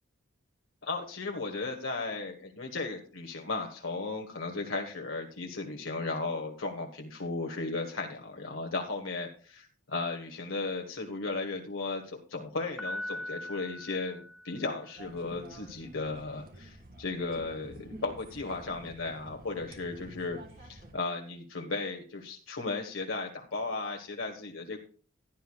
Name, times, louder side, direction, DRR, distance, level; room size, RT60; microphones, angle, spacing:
voice 1, 0.8-24.8, left 3 dB, 70° left, 3 dB, 1.3 m, -35 dB
Piano, 12.8-14.9, left 1 dB, 5° right, 2.7 m, -40 dB
sound 1, 15.0-20.9, right 1 dB, 50° right, 2.2 m, -49 dB
16.0 x 10.5 x 2.4 m, 0.41 s
head